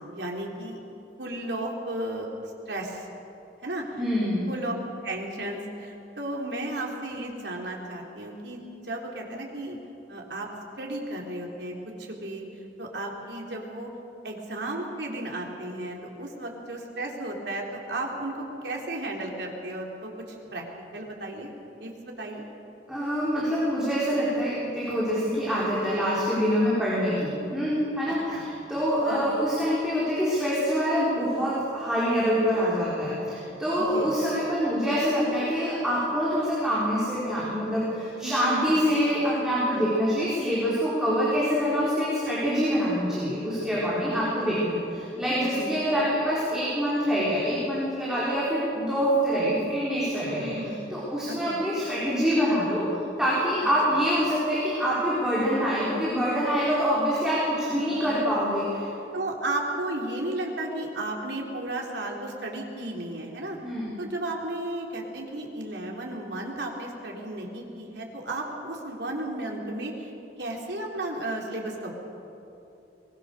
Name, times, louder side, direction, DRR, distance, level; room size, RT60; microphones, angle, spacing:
voice 1, 0.1-0.8 1.2-2.3 2.7-3.1 3.6-4.0 4.5-4.7 5.0-9.8 10.1-10.5 10.8-12.5 12.8-13.9 14.2-20.6 20.9-21.5 21.8-22.5 28.3-28.5 29.1-29.4 33.9-34.1 38.2-38.9 39.7-39.9 44.4-44.6 45.5-45.8 50.3-50.8 51.3-51.6 53.6-54.1 57.8-58.3 59.1-63.6 64.0-70.1 70.4-71.9, right 1 dB, 80° right, 0 dB, 3.6 m, -34 dB
voice 2, 4.0-4.5 22.9-52.9 53.2-58.9 63.6-64.0, equal, 5° right, -8 dB, 4.4 m, -25 dB
23.0 x 20.5 x 6.8 m, 2.9 s
head